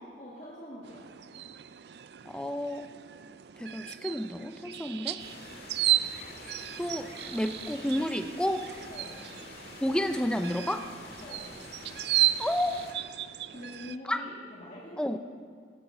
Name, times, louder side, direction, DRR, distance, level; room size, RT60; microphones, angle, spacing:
voice 1, 0.2-1.0 5.5-5.7 8.9-9.2 11.2-11.4 13.5-15.2, left 1 dB, 40° left, -6 dB, 2.0 m, -44 dB
sound 1, 0.8-14.0, right 14 dB, 70° right, 0.4 m, -34 dB
voice 2, 2.3-2.9 3.6-5.2 6.8-8.7 9.8-10.9 12.4-12.8 14.1-14.2 15.0-15.2, left 1 dB, 5° left, 7 dB, 0.5 m, -31 dB
sound 2, 5.2-12.9, left 2 dB, 60° left, 1.9 m, -47 dB
15.0 x 9.0 x 7.0 m, 2.1 s
head